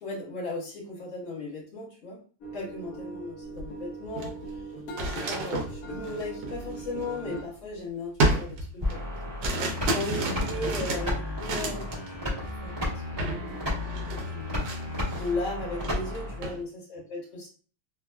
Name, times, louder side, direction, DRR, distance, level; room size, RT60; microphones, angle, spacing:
voice 1, 0.0-2.2 2.5-4.6 5.0-9.0 9.9-17.5, left 2 dB, 40° left, -4 dB, 1.4 m, -37 dB
sound 1, 2.4-7.4, right 2 dB, 70° left, 0.8 m, -41 dB
sound 2, 3.5-3.7 4.0-7.6 8.2-12.1 12.4-12.7 13.2-13.4 13.7-15.4 15.7-16.6, right 2 dB, 70° right, 1.2 m, -31 dB
sound 3, 8.8-16.4, left 1 dB, 25° right, 0.6 m, -33 dB
3.1 x 2.3 x 2.2 m, 0.40 s
omnidirectional pair, 2.1 m